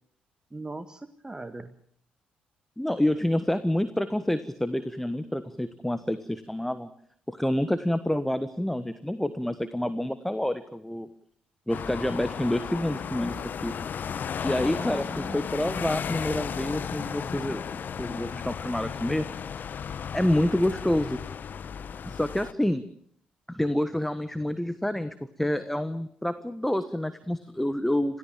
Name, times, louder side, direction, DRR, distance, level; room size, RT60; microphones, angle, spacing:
voice 1, 0.5-1.7 14.8-15.7, right 2 dB, 15° right, 10 dB, 1.7 m, -40 dB
voice 2, 2.8-6.9 7.3-11.1 11.7-13.7 14.4-19.3 20.1-21.2 22.0-22.8 23.5-28.2, left 1 dB, 5° left, 12 dB, 1.5 m, -28 dB
sound 1, 11.7-22.5, left 7 dB, 50° left, 1.1 m, -34 dB
27.5 x 17.0 x 7.5 m, 0.65 s
figure-of-eight pair, 40°, 4 cm